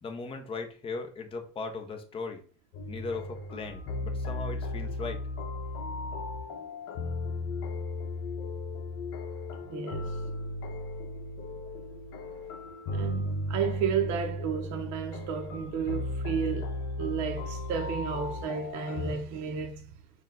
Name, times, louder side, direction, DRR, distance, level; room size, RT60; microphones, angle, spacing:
voice 1, 0.0-2.4 2.9-5.2, left 4 dB, 15° left, 0.5 m, -38 dB
sound 1, 2.7-19.1, left 2 dB, 40° left, 0.9 m, -35 dB
voice 2, 9.7-10.2 12.9-19.8, right 7 dB, 45° right, 0.6 m, -32 dB
4.2 x 2.2 x 3.6 m
supercardioid pair, 120°, 41 cm